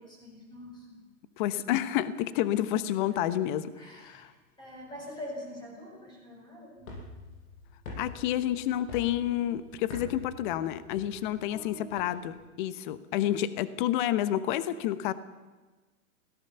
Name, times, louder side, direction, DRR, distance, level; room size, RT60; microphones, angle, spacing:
voice 1, 0.2-0.9 3.1-3.2 3.8-4.3 4.6-6.9 11.5-12.0, left 1 dB, 10° left, 0 dB, 6.7 m, -44 dB
voice 2, 1.4-4.3 8.0-15.1, left 12 dB, 35° left, 15 dB, 1.1 m, -29 dB
sound 1, 6.8-12.5, left 2 dB, 65° left, 7.8 m, -46 dB
22.5 x 17.5 x 7.0 m, 1.3 s
hypercardioid pair, 160°, 43 cm